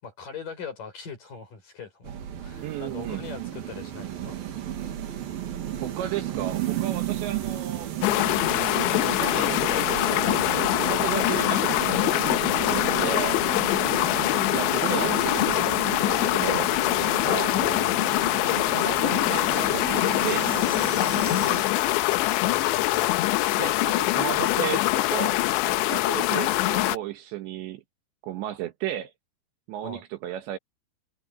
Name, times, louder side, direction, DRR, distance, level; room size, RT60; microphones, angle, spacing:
voice 1, 0.0-4.4 14.2-14.5 17.5-18.0 22.4-23.1 29.8-30.0, left 5 dB, 45° left, 8.1 m, -41 dB
sound 1, 2.0-21.6, right 11 dB, 55° right, 3.6 m, -34 dB
voice 2, 2.6-3.3 5.8-7.9 8.9-13.4 14.5-16.7 17.3-17.9 18.7-20.7 23.6-25.4 25.6-27.8 28.2-29.1 29.7-30.6, right 12 dB, 75° right, 3.3 m, -34 dB
sound 2, 8.0-27.0, left 17 dB, 80° left, 2.8 m, -24 dB
omnidirectional pair, 5.6 m